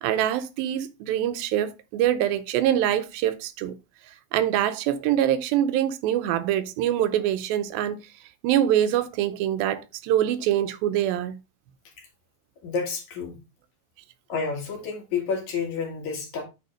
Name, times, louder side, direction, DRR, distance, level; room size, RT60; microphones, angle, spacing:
voice 1, 0.0-3.7 4.3-8.0 8.4-11.4, right 11 dB, 90° right, 2.5 m, -24 dB
voice 2, 12.6-13.4 14.3-16.4, left 5 dB, 55° left, 3.0 m, -29 dB
8.4 x 3.6 x 5.0 m
omnidirectional pair, 4.2 m